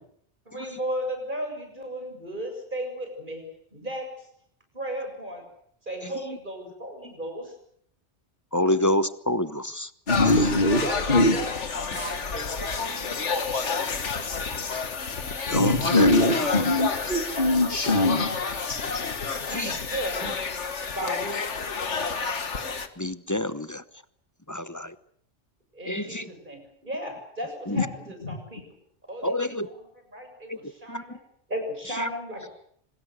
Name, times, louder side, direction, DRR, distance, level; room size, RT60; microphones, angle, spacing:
voice 1, 0.5-3.4 3.7-4.1 4.7-5.5 5.9-7.5 10.8-11.5 11.8-14.3 19.3-20.3 20.9-21.5 25.7-28.7 29.1-29.7 30.1-31.2 31.5-32.5, equal, 45° right, 5 dB, 7.3 m, -35 dB
voice 2, 6.0-6.4 7.0-7.1 8.5-9.9 10.2-10.5 15.5-16.1 16.4-16.5 17.9-18.0 19.5-19.8 21.0-21.3 23.0-23.8 24.5-24.9 25.8-26.3 27.7-27.9 29.2-29.7 30.5-31.2 31.9-32.1, left 1 dB, 15° left, 13 dB, 0.9 m, -28 dB
sound 1, 10.1-22.9, left 5 dB, 85° left, 2.0 m, -30 dB
voice 3, 10.1-10.8 11.1-11.4 15.5-18.4 28.2-28.4, left 1 dB, 50° left, 6 dB, 3.0 m, -22 dB
26.0 x 20.0 x 8.2 m, 0.66 s
omnidirectional pair, 1.2 m